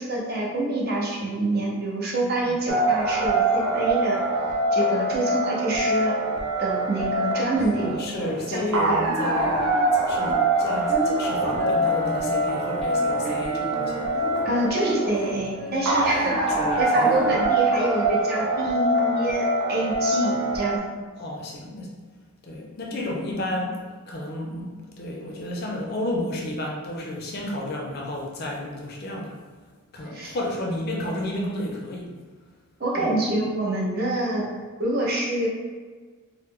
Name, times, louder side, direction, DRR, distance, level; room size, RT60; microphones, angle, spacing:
voice 1, 0.0-4.2 4.7-6.2 6.6-9.1 14.4-16.5 16.8-20.9 30.1-30.4 32.8-34.4 34.8-35.5, right 1 dB, 45° right, -3 dB, 0.6 m, -26 dB
sound 1, 2.7-20.8, right 1 dB, 85° right, 0.5 m, -24 dB
sound 2, 7.5-17.4, left 1 dB, ahead, 0.7 m, -34 dB
voice 2, 7.8-9.6 9.9-14.1 16.2-17.3 21.2-22.0 22.4-23.8 24.1-29.4 29.9-32.1 32.9-33.1, left 1 dB, 45° left, -1 dB, 0.5 m, -32 dB
3.0 x 2.0 x 3.5 m, 1.5 s
head